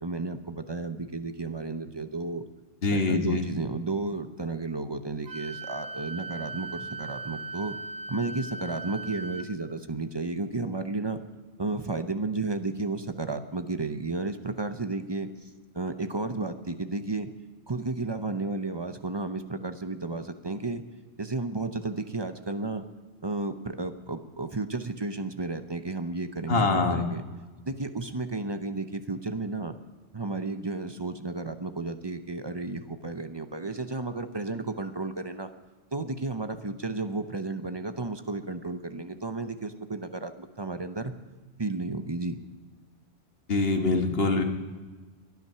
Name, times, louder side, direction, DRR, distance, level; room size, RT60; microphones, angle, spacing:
voice 1, 0.0-2.4 2.9-7.8 8.1-11.2 11.6-15.5 15.7-17.3 17.7-20.8 21.2-22.8 23.2-27.2 27.7-29.7 30.1-35.5 35.9-41.1 41.6-42.4, right 3 dB, 25° right, 8 dB, 0.7 m, -33 dB
voice 2, 2.8-3.4 26.5-27.1 43.5-44.4, left 3 dB, 60° left, 4 dB, 1.7 m, -24 dB
Wind instrument woodwind instrument, 5.3-9.5, right 3 dB, 65° right, 1.1 m, -38 dB
23.0 x 9.4 x 5.6 m, 1.3 s
omnidirectional pair, 1.1 m